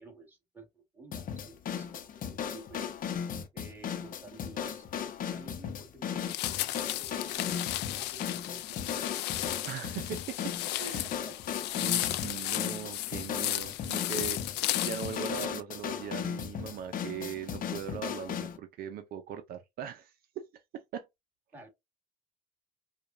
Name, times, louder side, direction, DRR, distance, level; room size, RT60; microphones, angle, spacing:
voice 1, 0.0-2.9 3.5-4.9 5.3-7.7 8.0-9.5 10.8-11.6 11.9-12.1 21.5-21.7, right 2 dB, 10° right, 2.0 m, -52 dB
sound 1, 1.1-18.6, left 8 dB, 55° left, 0.8 m, -37 dB
sound 2, 6.2-15.5, left 16 dB, 85° left, 0.4 m, -34 dB
voice 2, 9.6-11.1 11.8-21.1, right 9 dB, 65° right, 0.6 m, -40 dB
5.0 x 2.3 x 2.6 m
cardioid pair, 110°, 17 cm